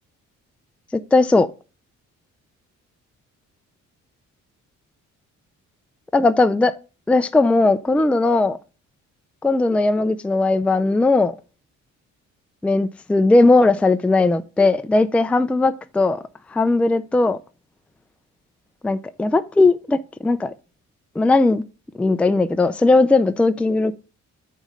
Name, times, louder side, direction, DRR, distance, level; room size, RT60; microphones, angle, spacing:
voice 1, 0.9-1.5 6.1-6.7 7.1-8.6 9.4-11.3 12.6-16.2 16.5-17.4 18.8-20.5 21.2-21.6 22.0-23.9, left 2 dB, 5° left, 0.4 m, -18 dB
8.7 x 3.2 x 5.3 m
cardioid pair, 90°, 30 cm